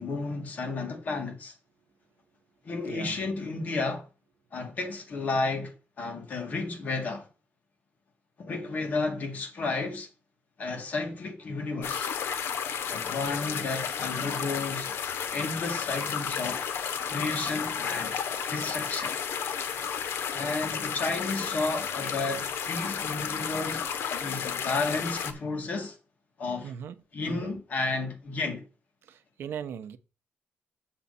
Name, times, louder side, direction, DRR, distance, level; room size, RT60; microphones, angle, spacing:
voice 1, 0.0-1.5 2.6-4.1 4.5-5.7 6.0-7.3 8.4-10.1 10.6-12.1 12.9-14.9 15.3-16.7 17.1-18.2 18.5-19.2 20.3-23.9 24.2-26.0 26.4-26.7 27.1-28.6, left 3 dB, 40° left, 2.2 m, -32 dB
voice 2, 2.8-3.2 26.6-27.5 29.0-30.0, right 8 dB, 70° right, 0.7 m, -39 dB
sound 1, 11.8-25.3, left 7 dB, 80° left, 1.0 m, -32 dB
7.5 x 7.1 x 4.2 m
wide cardioid pair, 180°, 4 cm